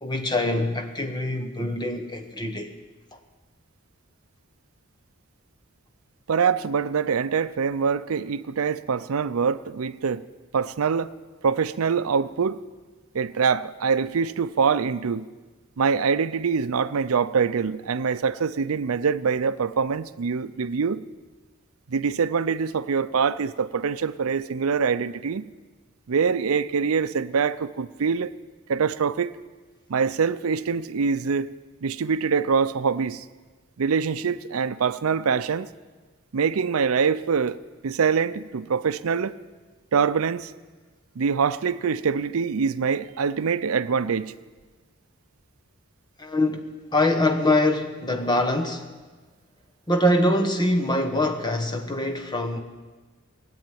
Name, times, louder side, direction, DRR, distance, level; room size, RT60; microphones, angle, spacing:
voice 1, 0.0-2.7 3.1-3.2 46.2-48.9 49.9-52.6, left 1 dB, 20° left, 1.1 m, -24 dB
voice 2, 6.3-10.2 10.5-11.1 11.4-12.6 13.1-15.3 15.8-21.0 21.9-25.4 26.1-28.3 28.7-29.3 29.9-31.5 31.8-33.2 33.8-35.7 36.3-37.6 37.8-39.3 39.9-40.5 41.2-44.3, right 6 dB, 85° right, 0.5 m, -24 dB
19.0 x 8.0 x 9.1 m
head